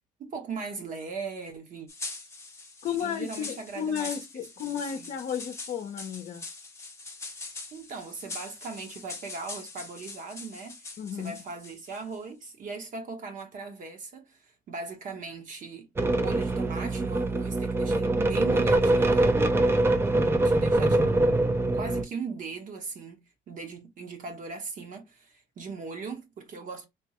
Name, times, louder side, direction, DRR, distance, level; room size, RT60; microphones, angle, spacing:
voice 1, 0.2-1.9 2.9-4.1 4.6-5.1 7.7-10.8 11.1-19.3 20.4-26.8, right 4 dB, 50° right, 1.1 m, -39 dB
sound 1, 1.9-12.2, left 3 dB, 15° left, 0.8 m, -42 dB
voice 2, 2.8-6.4 11.0-11.4, left 8 dB, 50° left, 0.6 m, -33 dB
sound 2, 16.0-22.0, right 2 dB, 15° right, 0.4 m, -24 dB
3.5 x 2.1 x 3.0 m
cardioid pair, 110°, 17 cm